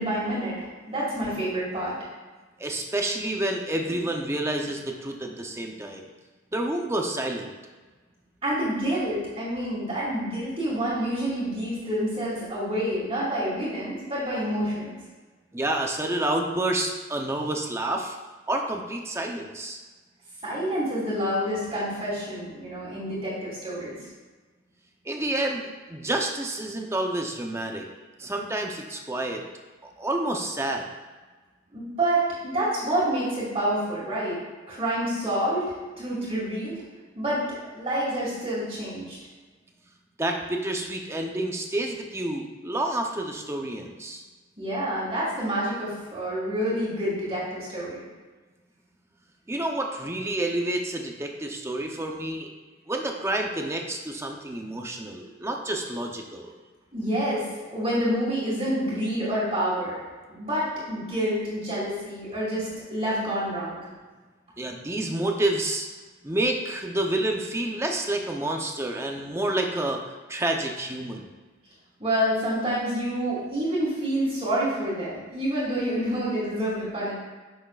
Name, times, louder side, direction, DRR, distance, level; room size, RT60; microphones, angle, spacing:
voice 1, 0.0-1.9 3.9-4.0 8.4-14.9 20.4-24.0 31.7-34.4 34.7-36.8 37.2-39.2 44.6-48.0 56.9-57.4 57.7-60.0 60.3-63.9 72.0-77.1, right 1 dB, 30° right, -10 dB, 2.2 m, -28 dB
voice 2, 2.6-6.1 6.5-7.5 15.5-18.2 18.5-19.8 25.0-27.9 28.2-29.4 29.8-30.9 40.2-44.2 49.5-52.5 52.9-56.5 64.6-65.9 66.2-71.3, right 1 dB, 15° right, 2 dB, 0.7 m, -29 dB
10.0 x 6.3 x 2.4 m, 1.3 s
head